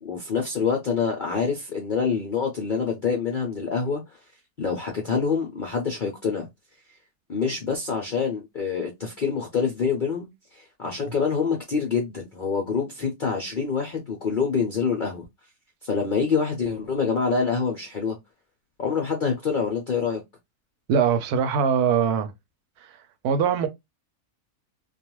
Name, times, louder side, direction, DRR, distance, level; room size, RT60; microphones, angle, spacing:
voice 1, 0.0-4.0 4.6-6.5 7.3-15.2 15.8-18.2 18.8-20.2, left 5 dB, 65° left, 0.5 m, -26 dB
voice 2, 20.9-22.3 22.8-22.9 23.2-23.7, right 7 dB, 80° right, 1.1 m, -22 dB
2.4 x 2.3 x 2.9 m
omnidirectional pair, 1.6 m